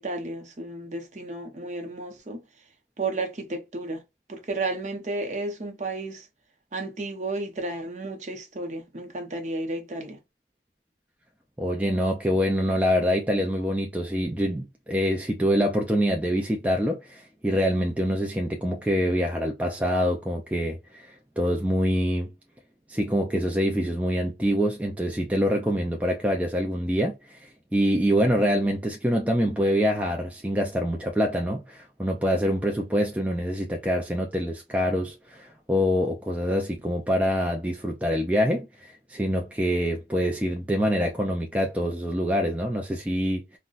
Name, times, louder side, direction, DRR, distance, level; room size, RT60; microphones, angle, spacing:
voice 1, 0.0-2.4 3.0-4.0 4.3-6.3 6.7-10.2, right 2 dB, 40° right, 0.7 m, -32 dB
voice 2, 11.6-22.3 22.9-43.6, equal, 10° right, 0.4 m, -25 dB
3.8 x 2.2 x 2.4 m
head